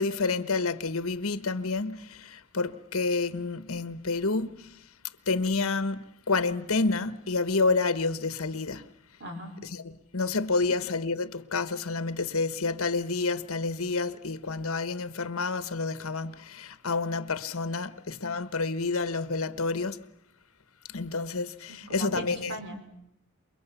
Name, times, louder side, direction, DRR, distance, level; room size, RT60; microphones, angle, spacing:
voice 1, 0.0-4.7 5.3-8.9 9.6-20.0 20.9-22.5, left 3 dB, 65° left, 1.2 m, -29 dB
voice 2, 9.2-9.5 21.7-22.8, right 1 dB, 50° right, 5.3 m, -38 dB
28.0 x 23.5 x 7.1 m
head